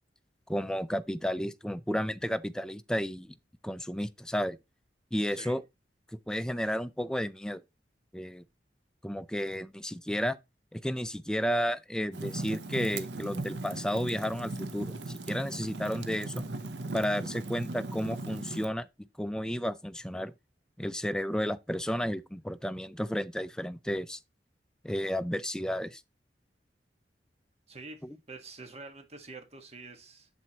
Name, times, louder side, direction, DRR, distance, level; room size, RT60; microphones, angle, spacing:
voice 1, 0.5-3.3 3.6-4.6 5.1-5.6 6.1-7.6 8.1-8.4 9.0-10.4 10.7-16.4 16.9-18.9 19.2-20.3 20.8-24.2 24.8-26.0, equal, 5° left, 0.4 m, -32 dB
Fire, 12.1-18.7, right 2 dB, 80° right, 0.9 m, -38 dB
voice 2, 27.7-30.3, right 3 dB, 35° right, 1.6 m, -47 dB
7.6 x 7.1 x 2.9 m
head